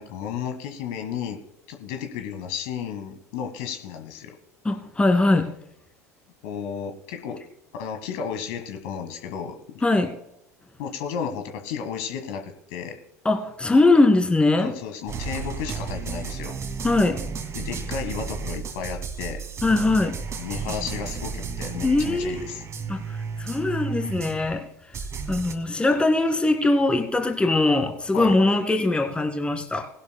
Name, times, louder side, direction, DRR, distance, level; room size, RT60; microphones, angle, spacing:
voice 1, 0.0-1.4 1.7-4.3 6.4-7.4 7.7-9.6 10.8-13.0 14.6-16.6 17.5-19.4 20.3-22.6 28.1-28.3, left 7 dB, 60° left, 1.6 m, -33 dB
voice 2, 4.6-5.5 9.8-10.1 13.2-14.7 16.8-17.2 19.6-20.2 21.8-22.5 22.9-24.7 25.3-29.9, left 2 dB, 10° left, 2.0 m, -21 dB
sound 1, 15.1-24.6 24.9-25.5, right 5 dB, 35° right, 2.3 m, -33 dB
20.0 x 11.5 x 2.2 m
figure-of-eight pair, 70°, 9 cm